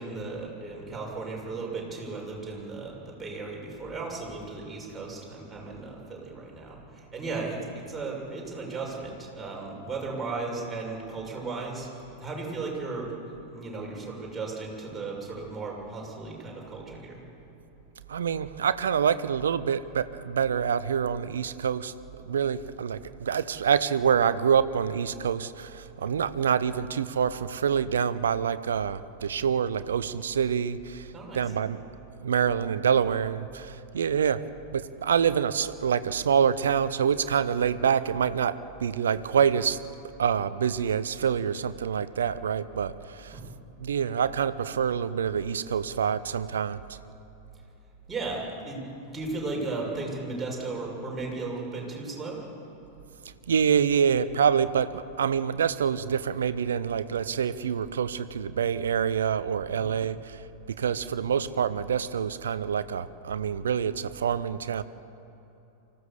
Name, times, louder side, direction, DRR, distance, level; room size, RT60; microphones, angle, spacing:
voice 1, 0.0-11.9 12.2-13.1 13.5-17.2 31.1-31.5 43.3-43.5 48.1-52.4 59.7-59.9, right 3 dB, 15° right, -2 dB, 6.5 m, -35 dB
voice 2, 18.1-21.9 22.2-31.8 32.2-34.5 34.7-39.8 40.2-43.4 43.8-47.0 53.2-64.8, right 7 dB, 65° right, 15 dB, 0.7 m, -26 dB
25.0 x 16.0 x 7.1 m, 3.0 s
figure-of-eight pair, 90°, 0 cm